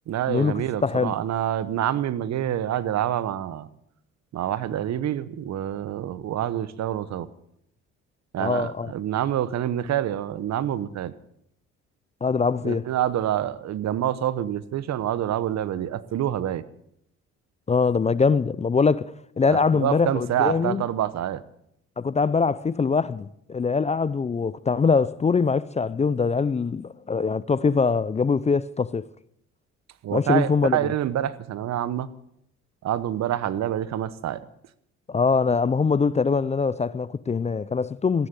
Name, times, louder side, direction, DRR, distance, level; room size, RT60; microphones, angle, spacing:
voice 1, 0.1-3.7 4.3-7.3 8.3-11.1 12.6-16.6 19.5-21.4 30.0-32.1 32.8-34.4, right 11 dB, 60° right, 1.0 m, -27 dB
voice 2, 0.8-1.1 8.4-8.9 12.2-12.9 17.7-20.8 22.0-29.0 30.1-30.9 35.1-38.3, left 5 dB, 20° left, 0.5 m, -23 dB
15.0 x 9.9 x 9.2 m
supercardioid pair, 80°, 30 cm